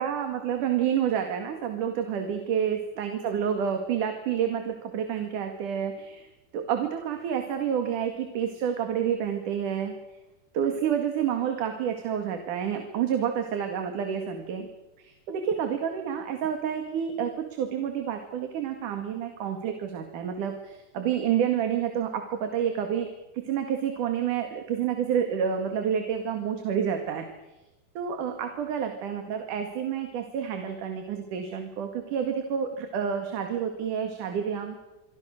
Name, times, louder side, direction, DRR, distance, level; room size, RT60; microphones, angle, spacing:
voice 1, 0.0-6.3 6.5-9.9 10.5-14.7 15.0-23.1 23.3-27.3 28.0-34.8, right 8 dB, 75° right, 5 dB, 3.5 m, -29 dB
28.0 x 23.0 x 6.6 m, 1.0 s
omnidirectional pair, 3.7 m